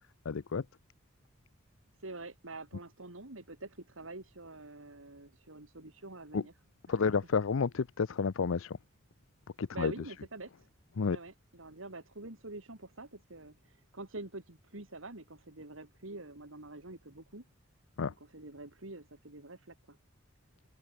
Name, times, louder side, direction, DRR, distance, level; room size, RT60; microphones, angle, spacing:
voice 1, 0.2-0.6 6.3-6.4 6.9-8.8 9.6-9.9 11.0-11.2 18.0-18.1, left 5 dB, 80° left, 0.6 m, -30 dB
voice 2, 2.0-6.5 6.9-7.2 9.7-10.7 11.1-17.4 18.3-20.0, right 2 dB, 75° right, 3.0 m, -46 dB
open air
head